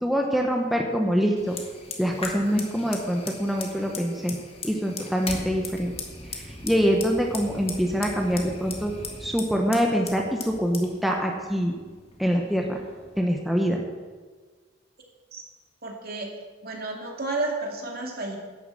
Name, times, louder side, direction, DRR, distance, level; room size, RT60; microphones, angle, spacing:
voice 1, 0.0-1.6 2.0-4.4 4.6-5.9 6.3-8.9 9.2-11.7 12.2-12.8 13.2-13.8, equal, ahead, 0 dB, 1.1 m, -25 dB
Fire, 1.4-13.2, left 3 dB, 30° left, 1.8 m, -39 dB
voice 2, 15.8-16.3 16.6-18.4, right 2 dB, 55° right, 1 dB, 2.4 m, -31 dB
11.5 x 7.8 x 7.7 m, 1.5 s
head